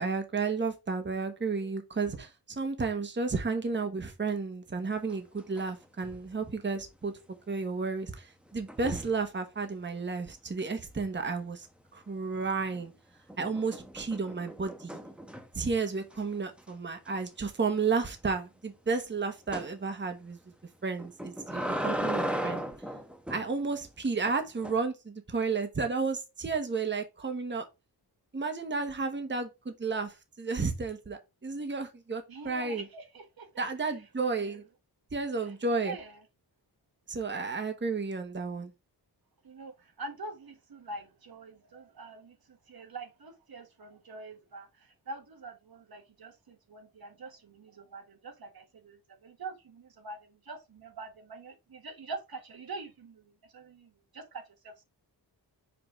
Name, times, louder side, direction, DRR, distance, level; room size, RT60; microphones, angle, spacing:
voice 1, 0.0-7.1 7.5-11.7 11.9-12.9 13.4-15.0 15.5-20.4 20.8-22.7 23.3-27.7 28.3-32.8 33.6-34.6 35.1-36.0 37.1-38.7, right 4 dB, 25° right, 1.1 m, -32 dB
sound 1, 5.1-5.7 6.0-6.4 8.7-9.2 12.3-12.8 13.3-15.7 16.1-16.2 16.6-16.7 17.1-17.2 19.5-19.7 21.0-23.5 24.3-24.7, equal, 5° right, 0.9 m, -36 dB
voice 2, 32.3-33.9 34.3-34.6 35.4-35.5 35.8-36.2 39.4-54.8, right 3 dB, 60° right, 1.2 m, -45 dB
5.9 x 5.1 x 3.6 m
wide cardioid pair, 110°, 40 cm